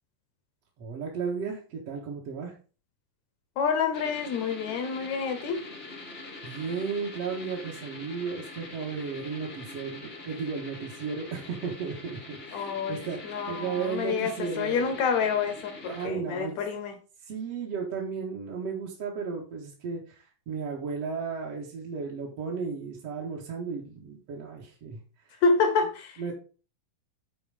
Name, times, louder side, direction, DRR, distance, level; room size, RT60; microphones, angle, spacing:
voice 1, 0.8-2.5 6.4-15.0 15.8-16.6 17.2-25.0 25.3-25.4 26.2-26.3, right 5 dB, 50° right, 2.3 m, -34 dB
voice 2, 3.6-5.7 12.5-16.9 25.4-26.2, left 5 dB, 70° left, 1.9 m, -28 dB
sound 1, 3.9-16.1, left 3 dB, 40° left, 0.8 m, -44 dB
9.2 x 4.8 x 5.0 m
omnidirectional pair, 4.1 m